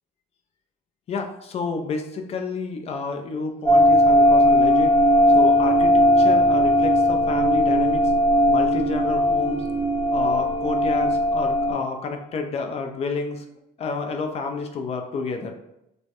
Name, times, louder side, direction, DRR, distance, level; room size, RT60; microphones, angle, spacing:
voice 1, 1.1-5.0 5.3-8.1 8.5-9.7 10.1-13.4 13.8-15.5, left 4 dB, 40° left, 4 dB, 0.3 m, -30 dB
sound 1, 3.7-11.7, equal, 15° left, 0.7 m, -18 dB
2.2 x 2.0 x 2.8 m, 0.85 s
cardioid pair, 110°, 17 cm